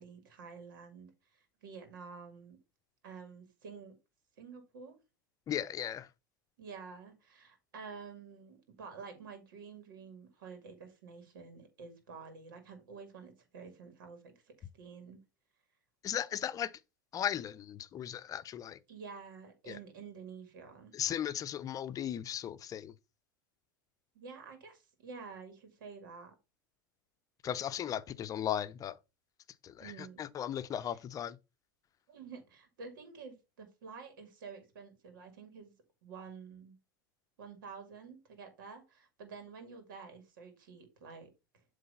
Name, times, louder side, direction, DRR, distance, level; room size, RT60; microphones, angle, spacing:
voice 1, 0.0-2.6 3.0-3.9 4.4-5.0 6.6-15.2 18.9-20.9 24.1-26.4 29.8-30.3 30.9-31.0 32.1-35.7 36.0-36.8 37.4-41.6, right 5 dB, 70° right, 2.3 m, -49 dB
voice 2, 5.5-6.1 16.0-16.8 17.1-18.8 19.7-19.8 20.9-22.9 27.4-29.0 29.6-31.4, left 10 dB, 30° left, 0.6 m, -36 dB
7.7 x 3.3 x 5.5 m
hypercardioid pair, 90°, 11 cm